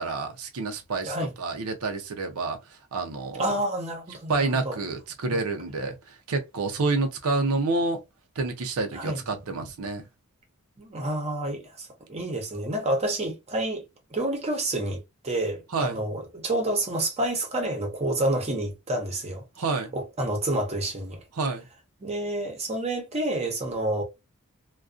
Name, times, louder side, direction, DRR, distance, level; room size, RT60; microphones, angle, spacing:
voice 1, 0.0-2.6 2.9-3.5 4.3-8.0 8.4-10.0 15.7-16.0 19.6-19.9 21.4-21.6, right 3 dB, 85° right, 0.6 m, -28 dB
voice 2, 3.4-4.8 5.3-5.4 8.9-9.2 10.8-13.8 14.1-19.4 19.9-21.2 22.0-24.0, right 1 dB, 30° right, 0.8 m, -29 dB
2.4 x 2.2 x 2.4 m
head